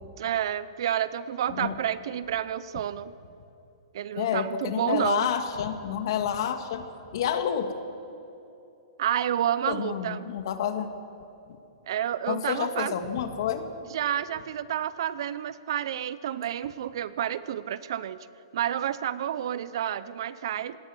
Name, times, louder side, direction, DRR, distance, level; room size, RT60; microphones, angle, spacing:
voice 1, 0.2-3.1 3.9-5.3 9.0-10.3 11.9-12.9 13.9-18.3 18.5-20.8, right 10 dB, 60° right, 16 dB, 0.8 m, -30 dB
voice 2, 1.5-1.8 4.1-6.8 7.1-7.7 9.7-10.9 12.3-13.7, left 8 dB, 55° left, 8 dB, 2.0 m, -29 dB
25.0 x 19.0 x 6.4 m, 2.8 s
hypercardioid pair, 160°, 3 cm